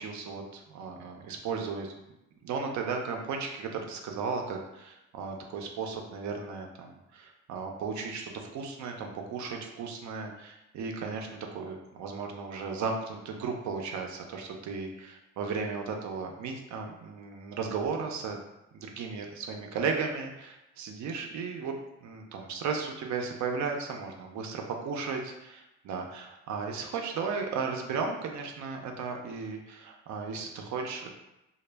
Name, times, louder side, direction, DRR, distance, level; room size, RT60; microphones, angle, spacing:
voice 1, 0.0-1.9 2.4-18.4 18.7-21.7 22.0-31.1, right 5 dB, 70° right, 3 dB, 0.5 m, -35 dB
2.1 x 2.0 x 3.3 m, 0.92 s
cardioid pair, 90°, 30 cm